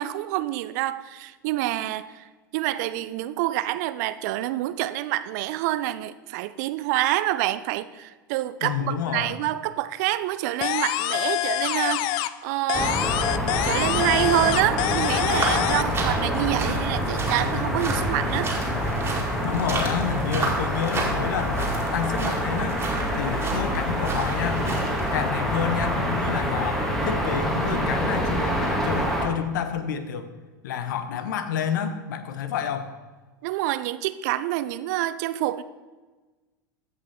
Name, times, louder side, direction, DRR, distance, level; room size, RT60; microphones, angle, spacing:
voice 1, 0.0-2.2 2.5-13.0 13.6-18.5 33.4-35.6, right 15 dB, 55° right, 0.4 m, -27 dB
voice 2, 8.6-9.4 19.4-22.8 23.1-24.7 25.1-30.3 30.6-32.9, left 8 dB, 65° left, 0.9 m, -29 dB
sound 1, 10.6-12.4 12.7-15.8, left 15 dB, 45° left, 0.4 m, -26 dB
sound 2, 12.7-29.3, equal, 5° left, 1.7 m, -26 dB
sound 3, 15.2-25.2, right 3 dB, 20° right, 2.2 m, -33 dB
15.0 x 5.6 x 3.6 m
hypercardioid pair, 85°, 11 cm